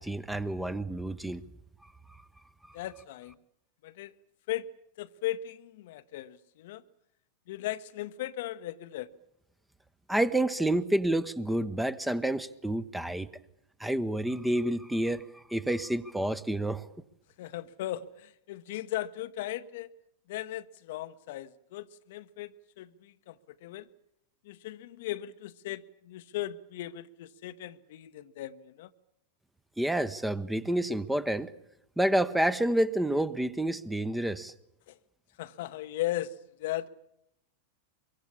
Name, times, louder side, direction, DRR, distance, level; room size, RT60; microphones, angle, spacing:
voice 1, 0.0-1.4 10.1-13.3 13.8-15.2 15.5-16.8 29.8-31.5 32.0-34.5, right 1 dB, 5° right, 0.9 m, -29 dB
voice 2, 2.7-3.4 3.8-4.1 4.5-4.7 5.0-6.8 7.5-9.1 17.4-19.9 20.3-23.9 24.4-28.9 34.9-35.0 35.4-36.9, left 14 dB, 55° left, 0.9 m, -37 dB
24.0 x 23.0 x 8.6 m
figure-of-eight pair, 90°, 0 cm